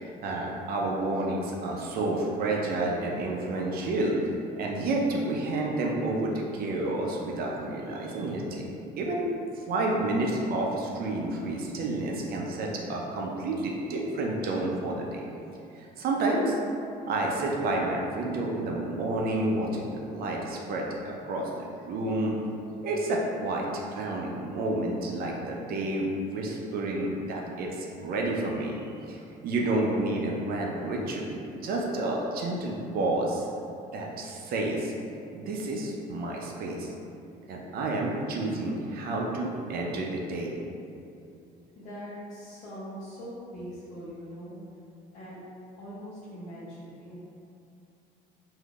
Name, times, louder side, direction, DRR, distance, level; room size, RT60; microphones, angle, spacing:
voice 1, 0.2-4.2 4.6-9.3 9.7-15.2 15.7-16.6 17.1-22.4 22.8-33.5 33.9-34.9 35.3-36.9 37.5-40.6, right 2 dB, 65° right, -1 dB, 0.5 m, -30 dB
voice 2, 41.8-44.6 45.1-45.4 45.8-47.2, equal, 45° left, -11 dB, 0.9 m, -42 dB
3.5 x 2.6 x 2.4 m, 2.6 s
cardioid pair, 110°, 17 cm